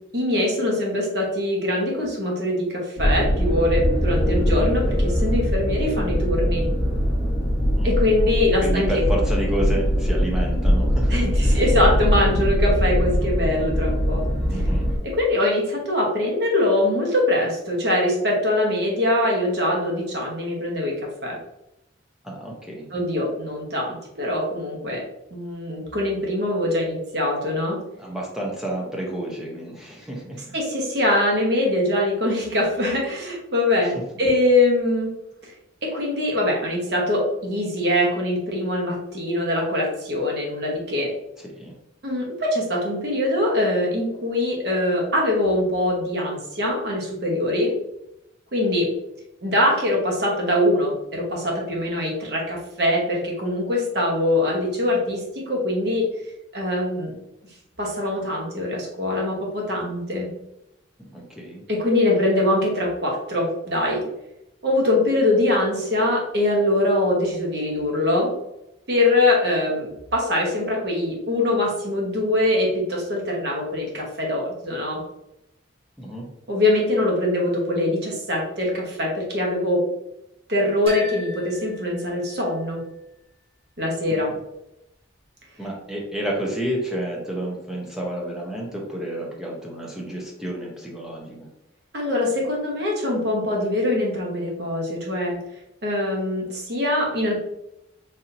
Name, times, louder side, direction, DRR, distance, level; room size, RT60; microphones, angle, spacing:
voice 1, 0.1-6.7 7.8-8.9 11.1-14.3 15.0-21.4 22.9-25.0 25.3-27.8 30.5-35.1 35.4-35.5 35.8-41.1 42.0-47.7 48.5-48.9 49.4-56.1 56.5-57.2 57.8-60.3 61.7-64.0 64.6-68.3 68.9-75.0 76.5-79.8 80.5-82.8 83.8-84.3 91.9-95.4 95.8-97.4, left 1 dB, 55° right, -1 dB, 1.0 m, -23 dB
sound 1, 3.0-15.0, equal, 15° left, 1.1 m, -22 dB
voice 2, 8.6-11.6 14.5-14.9 22.2-22.9 28.0-30.5 33.8-33.9 41.6-41.7 61.0-61.6 76.0-76.3 84.1-84.2 85.6-91.5, right 1 dB, 5° right, -3 dB, 0.7 m, -30 dB
sound 2, 80.9-82.8, equal, 30° right, 1.0 m, -39 dB
4.3 x 2.7 x 2.6 m, 0.86 s
head